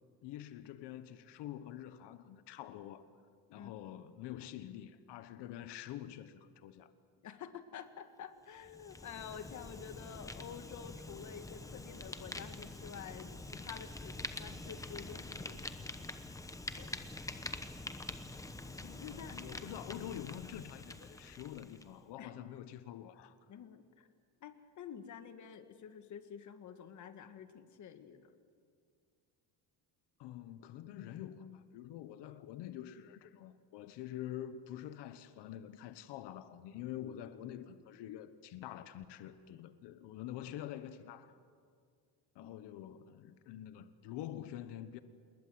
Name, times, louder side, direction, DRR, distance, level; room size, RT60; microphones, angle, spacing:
voice 1, 0.2-3.0 3.5-6.9 18.6-23.4 30.2-41.4 42.3-45.0, left 11 dB, 70° left, 1.2 m, -46 dB
voice 2, 7.2-15.8 16.8-17.0 18.8-19.4 22.2-22.3 23.5-24.1 24.4-28.3 42.4-42.5, left 8 dB, 40° left, 1.7 m, -49 dB
Fire, 8.6-21.9, left 2 dB, 10° left, 0.9 m, -46 dB
28.0 x 21.0 x 7.8 m
cardioid pair, 160°, 43 cm